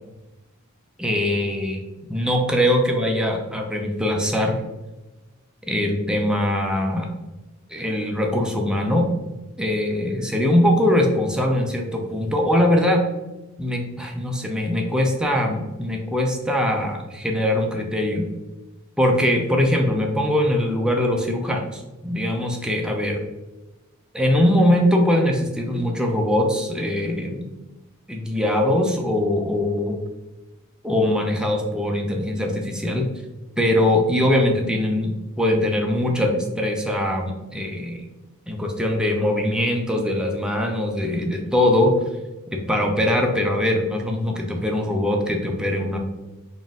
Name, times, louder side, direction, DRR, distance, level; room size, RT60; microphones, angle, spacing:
voice 1, 1.0-1.8 2.1-4.6 5.7-7.1 7.7-9.1 9.6-13.0 13.6-18.2 19.0-23.2 24.1-27.4 28.1-30.0 30.8-33.1 33.6-35.1 35.4-38.0 38.5-42.0 42.5-46.0, left 1 dB, 5° right, 1 dB, 0.5 m, -22 dB
4.0 x 2.6 x 3.6 m, 1.0 s
head